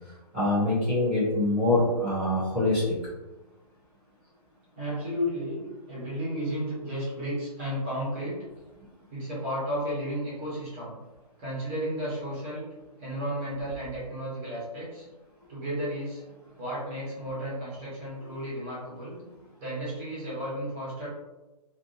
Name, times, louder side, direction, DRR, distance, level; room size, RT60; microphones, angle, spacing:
voice 1, 0.3-2.9, left 2 dB, ahead, -26 dB, 0.3 m, -24 dB
voice 2, 4.7-8.4 9.1-10.9 11.4-12.7 13.0-15.1 15.5-16.2 16.6-19.2 19.6-21.1, equal, 20° right, -8 dB, 1.2 m, -33 dB
3.6 x 2.6 x 2.6 m, 1.1 s
hypercardioid pair, 175°, 20 cm